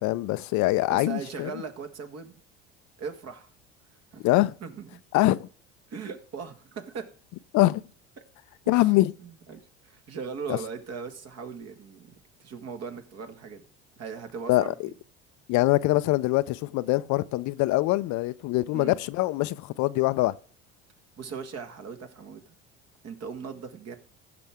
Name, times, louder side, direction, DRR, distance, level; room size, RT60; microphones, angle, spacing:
voice 1, 0.0-1.5 4.2-4.5 5.1-5.5 7.5-7.8 8.7-9.1 10.5-10.6 14.5-14.6 15.5-20.3, left 18 dB, 55° left, 0.6 m, -23 dB
voice 2, 0.9-2.4 3.0-3.5 4.1-4.3 4.6-4.9 5.9-7.1 8.7-8.9 9.2-12.1 12.4-13.6 14.0-14.9 18.7-19.0 21.2-22.6 23.0-24.0, right 5 dB, 45° right, 1.9 m, -39 dB
15.5 x 6.1 x 3.6 m
hypercardioid pair, 75°, 34 cm